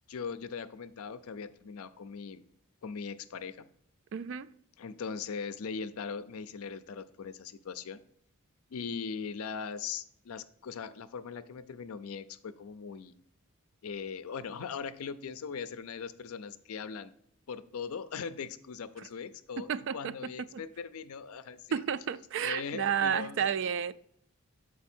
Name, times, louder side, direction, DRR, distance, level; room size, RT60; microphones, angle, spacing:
voice 1, 0.1-2.4 2.8-3.7 4.8-8.0 8.7-13.1 13.8-17.1 17.5-21.8 22.4-23.5, left 6 dB, 75° left, 0.5 m, -40 dB
voice 2, 4.1-4.5 19.7-20.1 21.7-23.9, right 7 dB, 55° right, 0.3 m, -31 dB
7.1 x 4.7 x 4.3 m
head